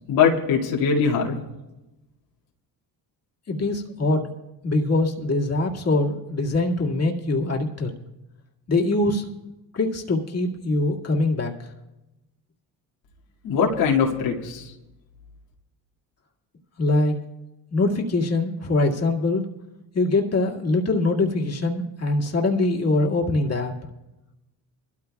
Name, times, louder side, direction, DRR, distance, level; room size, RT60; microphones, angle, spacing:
voice 1, 0.1-1.4 13.4-14.7, left 6 dB, 85° left, -3 dB, 2.3 m, -21 dB
voice 2, 3.5-4.3 4.6-7.9 8.7-9.2 9.7-11.7 16.8-17.1 17.7-19.4 19.9-23.7, left 2 dB, 35° left, -1 dB, 2.1 m, -23 dB
24.5 x 13.0 x 2.4 m, 1.0 s
supercardioid pair, 70°, 43 cm